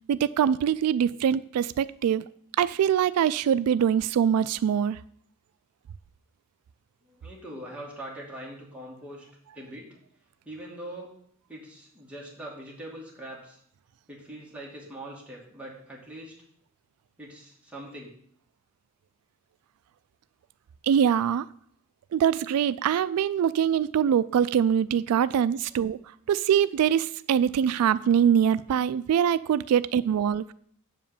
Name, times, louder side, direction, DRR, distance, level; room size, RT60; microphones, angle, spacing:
voice 1, 0.1-2.2 2.6-5.0 20.8-21.5 22.1-26.0 26.3-30.4, right 8 dB, 90° right, 0.3 m, -23 dB
voice 2, 7.0-9.3 9.5-10.0 10.5-11.2 11.5-13.6 14.1-16.3 17.2-18.1, right 1 dB, 5° right, 2.4 m, -42 dB
8.0 x 5.0 x 7.1 m
head